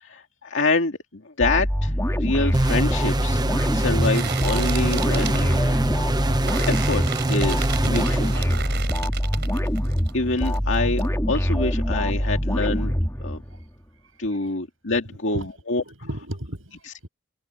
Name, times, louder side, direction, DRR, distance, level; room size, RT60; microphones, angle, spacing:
voice 1, 0.0-5.8 6.3-6.4 6.7-8.4 10.1-12.9 13.2-13.4 14.2-15.8, left 3 dB, 70° left, 2.2 m, -26 dB
sound 1, 1.4-13.7, equal, 15° left, 3.5 m, -24 dB
sound 2, 2.4-10.1 10.4-11.1, right 6 dB, 60° right, 4.3 m, -35 dB
sound 3, 2.5-9.0, right 2 dB, 20° right, 0.9 m, -25 dB
voice 2, 15.3-17.1, equal, 90° right, 7.3 m, -35 dB
head